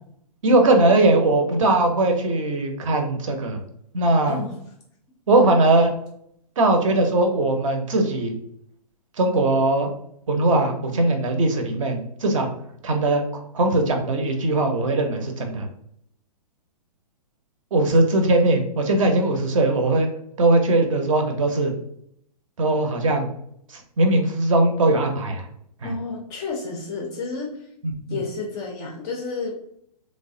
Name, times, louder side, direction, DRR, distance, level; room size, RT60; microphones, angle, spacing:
voice 1, 0.4-3.6 3.9-4.4 5.3-5.9 6.6-8.3 9.2-9.9 10.3-12.5 12.8-13.2 13.5-15.7 17.7-20.1 20.4-21.7 22.6-23.3 23.7-25.5 25.8-25.9 27.8-28.2, right 2 dB, 55° right, 4 dB, 0.6 m, -20 dB
voice 2, 4.3-4.6 25.8-27.7 28.1-29.5, left 4 dB, 20° left, 0 dB, 0.4 m, -31 dB
3.2 x 2.0 x 2.6 m, 0.71 s
figure-of-eight pair, 125°, 21 cm